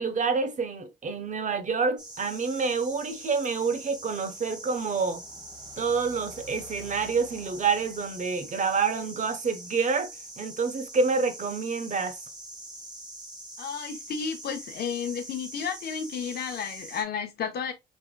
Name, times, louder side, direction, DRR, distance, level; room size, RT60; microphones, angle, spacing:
voice 1, 0.0-5.2 5.8-10.1 10.4-12.2, right 5 dB, 50° right, 0.9 m, -28 dB
sound 1, 2.0-17.0, right 1 dB, 25° right, 1.3 m, -43 dB
voice 2, 13.6-17.7, left 6 dB, 80° left, 0.8 m, -32 dB
5.2 x 3.4 x 2.2 m
cardioid pair, 100°, 16 cm